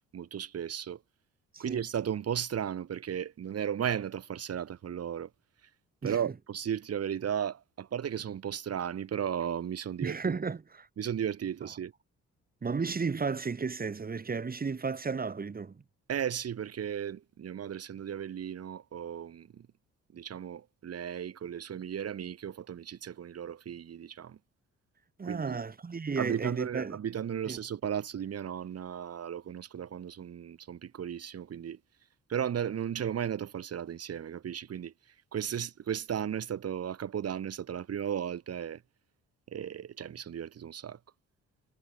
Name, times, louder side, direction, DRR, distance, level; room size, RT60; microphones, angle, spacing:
voice 1, 0.1-1.0 1.6-5.3 6.0-10.4 11.0-11.9 16.1-19.7 20.1-24.4 25.2-25.6 26.2-31.8 32.3-34.9 35.3-38.8 39.5-41.0, right 9 dB, 55° right, 2.1 m, -35 dB
voice 2, 10.0-10.9 12.6-15.8 25.2-27.0 27.5-27.6, right 5 dB, 30° right, 2.2 m, -33 dB
cardioid pair, 90°, 30 cm